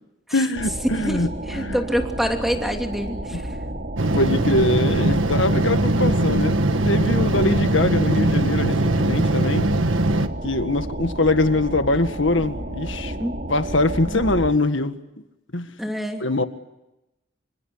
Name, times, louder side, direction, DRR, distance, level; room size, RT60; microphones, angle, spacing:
voice 1, 0.3-1.3 1.5-1.8 3.3-3.4 4.1-6.6 6.8-9.7 10.4-13.1 13.5-15.0 15.5-15.7 16.2-16.4, left 2 dB, 70° left, 9 dB, 1.8 m, -22 dB
sound 1, 0.5-14.5, right 1 dB, 50° right, 3.6 m, -32 dB
voice 2, 1.0-3.5 13.2-13.4 14.1-14.3 15.8-16.2, equal, ahead, 3 dB, 3.0 m, -26 dB
sound 2, 4.0-10.3, right 1 dB, 85° right, 1.6 m, -21 dB
28.0 x 26.0 x 8.1 m, 0.95 s
head